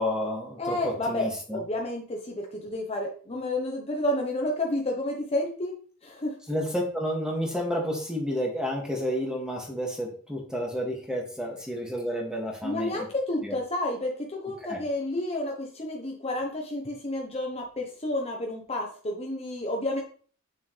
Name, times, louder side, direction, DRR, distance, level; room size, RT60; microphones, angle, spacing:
voice 1, 0.0-1.6 6.5-13.0 13.4-13.5 14.7-14.8, equal, 5° right, 0 dB, 2.3 m, -30 dB
voice 2, 0.6-5.7 6.0-6.4 12.6-20.0, left 1 dB, 30° left, 0 dB, 1.1 m, -30 dB
8.9 x 7.1 x 3.4 m, 0.43 s
head